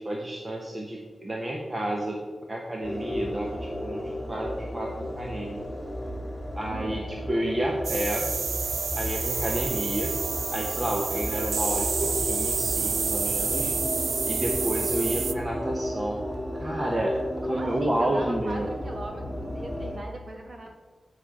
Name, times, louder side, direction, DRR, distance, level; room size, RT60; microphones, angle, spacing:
voice 1, 0.0-2.2 2.5-4.9 5.2-5.6 6.6-8.3 9.0-10.2 10.5-13.7 14.3-16.2 16.6-17.2 17.5-18.7, right 1 dB, 25° right, -1 dB, 1.1 m, -30 dB
sound 1, 2.8-20.0, left 1 dB, 5° left, 2.2 m, -34 dB
voice 2, 6.7-7.0 17.5-20.7, right 2 dB, 40° right, 2 dB, 1.7 m, -39 dB
sound 2, 7.8-15.3, right 5 dB, 80° right, 0.5 m, -29 dB
13.5 x 5.1 x 5.9 m, 1.4 s
wide cardioid pair, 150°, 0 cm